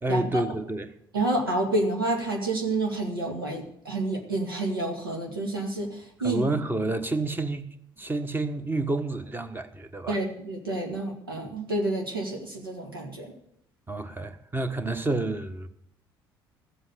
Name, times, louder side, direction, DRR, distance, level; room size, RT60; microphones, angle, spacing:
voice 1, 0.0-0.9 6.2-7.7 8.0-10.2 13.9-15.7, right 2 dB, 20° right, 1.4 m, -29 dB
voice 2, 1.1-6.4 10.1-13.3, right 2 dB, 85° right, 2.1 m, -29 dB
14.0 x 7.9 x 8.2 m
figure-of-eight pair, 55°, 12 cm